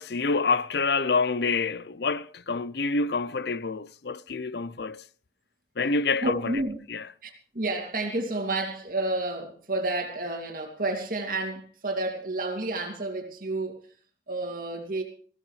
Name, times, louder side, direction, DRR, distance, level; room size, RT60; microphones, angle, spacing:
voice 1, 0.0-5.0 5.8-6.6 6.9-7.0, left 4 dB, 75° left, 0.7 m, -27 dB
voice 2, 6.2-6.8 7.2-13.8 14.3-15.0, right 2 dB, 50° right, 2.7 m, -30 dB
20.5 x 15.5 x 3.3 m
head